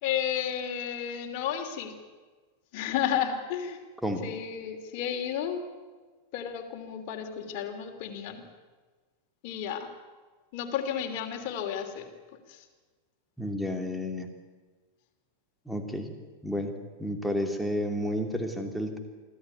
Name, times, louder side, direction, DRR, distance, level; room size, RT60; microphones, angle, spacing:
voice 1, 0.0-1.9 2.7-3.8 4.2-5.6 6.3-8.4 9.4-9.9 10.5-12.1 12.5-12.6, left 9 dB, 45° left, 4 dB, 3.1 m, -32 dB
voice 2, 13.4-14.3 15.7-16.1 16.4-16.7 17.0-19.0, equal, ahead, 5 dB, 2.8 m, -31 dB
25.0 x 15.0 x 9.6 m, 1.4 s
figure-of-eight pair, 90°, 0 cm